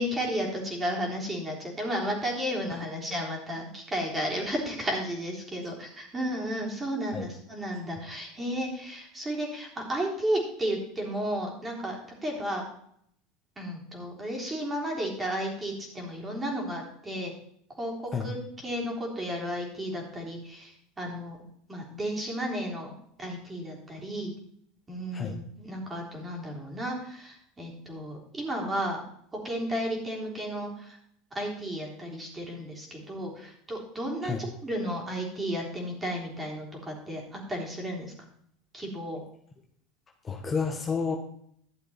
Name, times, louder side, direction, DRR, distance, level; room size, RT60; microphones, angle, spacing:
voice 1, 0.0-12.6 13.6-17.3 17.8-21.4 21.7-24.3 24.9-29.0 29.4-31.0 31.3-38.1 38.7-39.2, equal, 20° right, -1 dB, 3.7 m, -33 dB
voice 2, 40.2-41.2, left 5 dB, 25° left, 2 dB, 1.4 m, -30 dB
12.0 x 7.5 x 4.4 m, 0.67 s
supercardioid pair, 110°, 0 cm